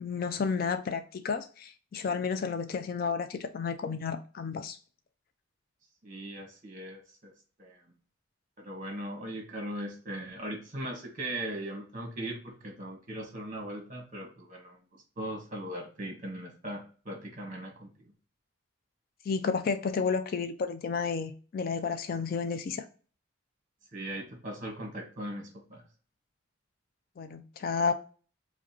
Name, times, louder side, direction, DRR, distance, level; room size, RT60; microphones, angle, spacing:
voice 1, 0.0-4.8 19.3-22.8 27.2-27.9, left 5 dB, 45° left, 0.3 m, -31 dB
voice 2, 6.0-7.3 7.6-7.8 8.6-14.8 15.2-18.1 23.9-25.8, right 1 dB, 40° right, 1.2 m, -39 dB
4.7 x 2.2 x 2.8 m
head